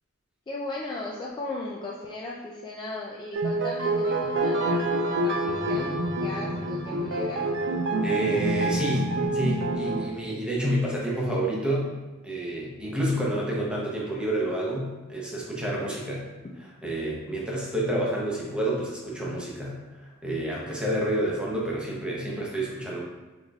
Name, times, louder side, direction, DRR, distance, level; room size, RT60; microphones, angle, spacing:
voice 1, 0.5-5.9 6.2-7.4 16.4-16.5, left 2 dB, 20° left, -4 dB, 0.3 m, -36 dB
sound 1, 3.3-10.1, right 2 dB, 55° right, 0.5 m, -27 dB
voice 2, 8.0-11.9 12.2-16.3 16.8-23.0, right 1 dB, 5° right, -4 dB, 0.8 m, -29 dB
3.9 x 3.8 x 2.3 m, 1.2 s
head